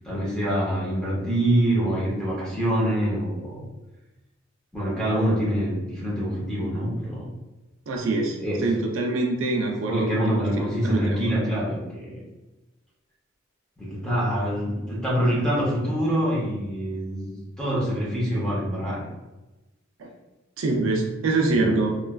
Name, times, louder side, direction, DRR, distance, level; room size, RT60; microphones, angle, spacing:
voice 1, 0.0-3.7 4.7-7.3 8.4-8.7 9.9-12.2 13.8-19.1 21.6-21.8, equal, 5° left, -6 dB, 0.8 m, -25 dB
voice 2, 7.9-8.4 8.6-10.4 10.8-11.2 20.0-20.1 20.6-21.9, right 3 dB, 70° right, 1 dB, 0.4 m, -24 dB
3.1 x 2.3 x 2.3 m, 1.1 s
head